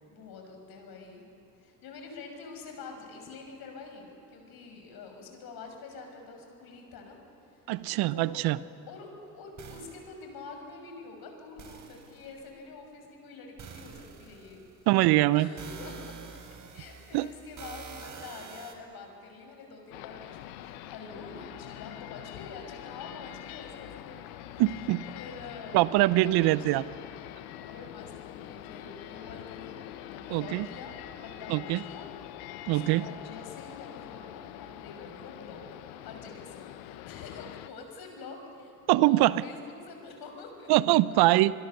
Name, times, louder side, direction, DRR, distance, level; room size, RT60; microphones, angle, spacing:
voice 1, 0.1-1.2 1.6-7.2 8.1-8.4 8.9-9.1 9.3-14.6 15.3-16.1 16.7-24.4 25.1-26.8 27.6-29.8 30.1-32.1 32.6-35.6 36.0-40.7, left 4 dB, 55° left, 3 dB, 6.3 m, -46 dB
voice 2, 7.7-8.6 14.9-15.5 17.1-17.3 24.6-25.0 25.7-26.8 30.3-30.7 31.5-31.8 32.7-33.0 38.9-39.4 40.7-41.5, right 17 dB, 60° right, 18 dB, 0.8 m, -23 dB
sound 1, 9.6-10.1 11.6-12.4 13.6-14.9 15.6-18.7, right 6 dB, 45° right, 3.9 m, -46 dB
sound 2, 19.9-37.7, left 13 dB, 75° left, 1.1 m, -44 dB
26.5 x 22.0 x 6.8 m, 2.7 s
hypercardioid pair, 70°, 43 cm